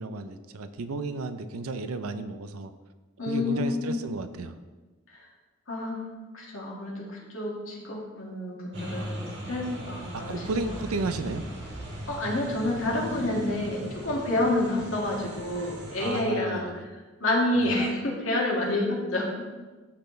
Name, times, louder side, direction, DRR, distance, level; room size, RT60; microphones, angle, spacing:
voice 1, 0.0-2.7 3.3-4.6 9.0-9.1 9.5-9.6 10.1-11.4 16.0-16.8 17.6-17.9, right 3 dB, 85° right, 11 dB, 0.5 m, -33 dB
voice 2, 3.2-4.0 5.1-5.2 5.7-6.0 6.3-10.4 12.1-16.7 17.2-19.3, left 1 dB, 70° left, -3 dB, 2.0 m, -28 dB
sound 1, 8.7-16.2, right 1 dB, 55° right, 1.7 m, -39 dB
13.0 x 4.5 x 3.2 m, 1.3 s
head